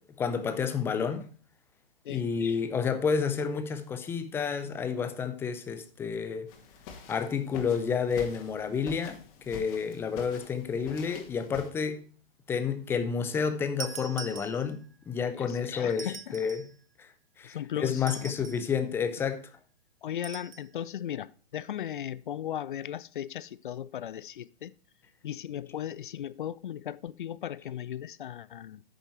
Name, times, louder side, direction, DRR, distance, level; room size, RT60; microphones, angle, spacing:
voice 1, 0.2-1.3 2.1-6.5 7.1-12.0 12.5-16.1 16.3-16.6 17.4-19.4, left 6 dB, 10° left, 0.5 m, -30 dB
sound 1, 6.5-11.7, left 4 dB, 35° left, 2.2 m, -46 dB
sound 2, 13.8-15.0 15.9-16.8 18.0-18.7 20.2-20.7, right 6 dB, 80° right, 0.7 m, -43 dB
voice 2, 15.3-16.4 17.4-18.3 20.0-24.7 25.2-28.8, left 10 dB, 55° left, 0.6 m, -37 dB
9.6 x 6.5 x 4.3 m
figure-of-eight pair, 130°, 29 cm